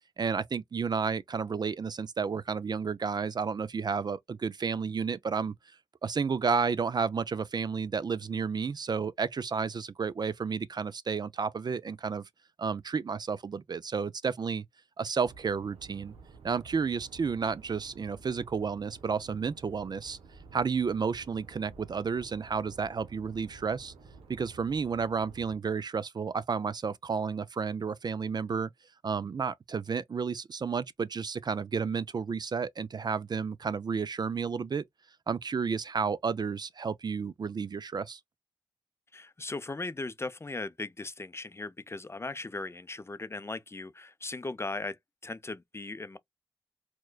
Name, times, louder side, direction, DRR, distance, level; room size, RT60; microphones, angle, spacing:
voice 1, 0.2-5.5 6.0-12.2 12.6-14.6 15.0-16.1 16.4-20.2 20.5-23.9 24.3-28.7 29.0-34.8 35.3-38.2, right 5 dB, 45° right, 0.4 m, -31 dB
sound 1, 15.2-25.6, right 4 dB, 90° right, 0.8 m, -52 dB
voice 2, 39.1-45.0 45.2-46.2, left 3 dB, 25° left, 0.5 m, -38 dB
4.4 x 2.2 x 2.3 m
cardioid pair, 45°, 10 cm